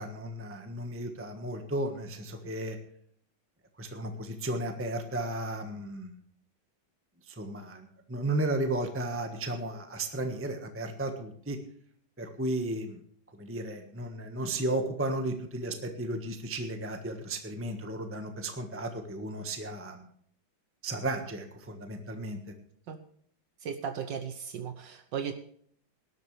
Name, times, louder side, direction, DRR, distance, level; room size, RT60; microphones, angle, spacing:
voice 1, 0.0-2.8 3.8-6.2 7.2-11.6 12.2-13.0 13.4-20.1 20.8-22.4, right 1 dB, 10° right, 5 dB, 1.2 m, -34 dB
voice 2, 23.6-25.3, right 7 dB, 75° right, 7 dB, 1.5 m, -36 dB
19.0 x 12.0 x 3.3 m, 0.62 s
omnidirectional pair, 2.1 m